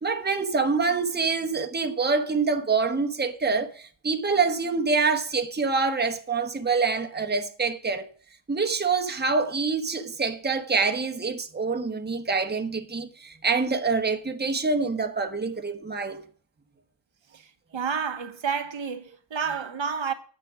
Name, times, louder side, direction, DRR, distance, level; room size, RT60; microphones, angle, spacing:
voice 1, 0.0-8.1 8.5-16.2, right 4 dB, 20° right, 1.1 m, -26 dB
voice 2, 17.7-20.1, right 6 dB, 65° right, 1.3 m, -30 dB
10.0 x 7.6 x 6.2 m
wide cardioid pair, 125°, 50 cm